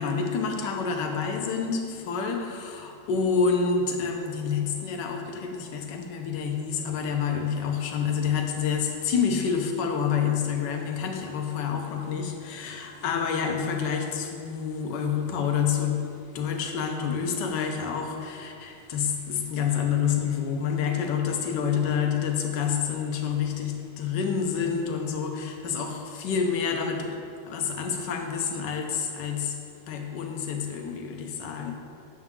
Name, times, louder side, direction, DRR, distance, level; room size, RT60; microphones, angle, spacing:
voice 1, 0.0-27.2 27.5-29.6 29.9-31.7, left 6 dB, 65° left, 3 dB, 1.4 m, -28 dB
9.5 x 6.9 x 3.7 m, 2.6 s
omnidirectional pair, 2.3 m